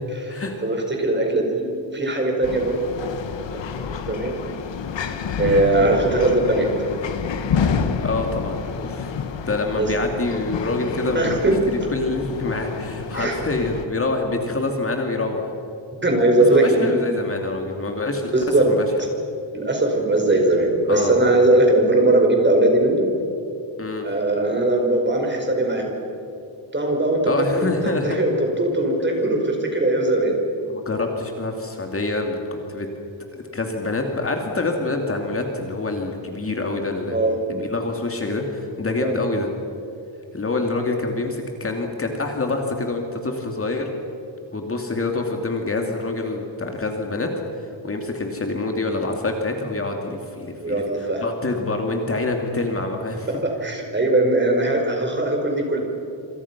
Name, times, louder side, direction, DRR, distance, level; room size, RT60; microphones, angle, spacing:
voice 1, 0.3-3.1 3.5-4.3 5.4-6.7 9.8-9.9 11.1-11.5 13.1-13.4 16.0-17.0 18.3-18.7 19.5-23.1 24.0-26.0 26.7-27.2 27.5-30.4 37.1-37.3 39.0-39.2 50.6-51.2 53.4-55.8, right 2 dB, 25° right, 2 dB, 5.0 m, -20 dB
sound 1, 2.4-13.9, left 6 dB, 70° left, 1.8 m, -29 dB
voice 2, 8.0-9.1 9.5-11.4 11.7-15.5 16.5-18.3 18.6-18.9 20.9-21.2 23.8-24.1 27.2-28.2 30.7-32.9 33.3-37.2 37.5-39.5 40.3-43.9 44.5-47.3 47.5-53.3, left 2 dB, 30° left, 2 dB, 2.5 m, -26 dB
27.0 x 27.0 x 6.0 m, 2.8 s
wide cardioid pair, 155°, 45 cm